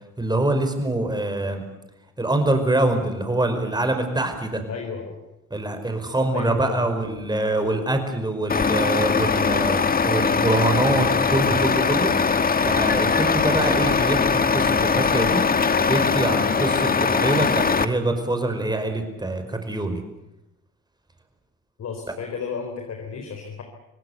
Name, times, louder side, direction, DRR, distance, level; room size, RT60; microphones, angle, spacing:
voice 1, 0.2-1.6 2.2-4.6 5.5-12.1 12.6-15.4 15.8-20.0, right 2 dB, 15° right, 6 dB, 5.2 m, -24 dB
voice 2, 4.7-5.2 6.3-6.9 21.8-23.6, left 5 dB, 60° left, 4 dB, 4.2 m, -32 dB
Truck, 8.5-17.9, left 5 dB, 30° left, 1.4 m, -21 dB
26.0 x 18.5 x 8.2 m, 0.91 s
cardioid pair, 90°, 30 cm